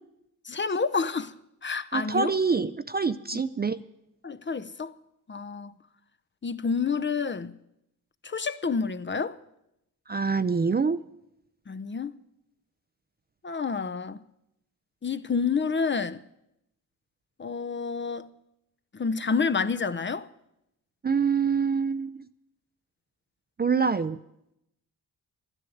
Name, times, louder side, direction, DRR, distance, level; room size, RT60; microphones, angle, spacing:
voice 1, 0.4-1.3 1.6-2.3 3.3-3.4 4.2-4.9 5.3-5.7 6.4-7.6 8.2-9.4 11.7-12.2 13.4-14.2 15.0-16.2 17.4-18.3 18.9-20.3, left 5 dB, 30° left, 0.7 m, -29 dB
voice 2, 1.9-3.8 10.1-11.0 21.0-22.3 23.6-24.2, right 5 dB, 25° right, 0.5 m, -25 dB
11.5 x 9.9 x 7.9 m
supercardioid pair, 50°, 41 cm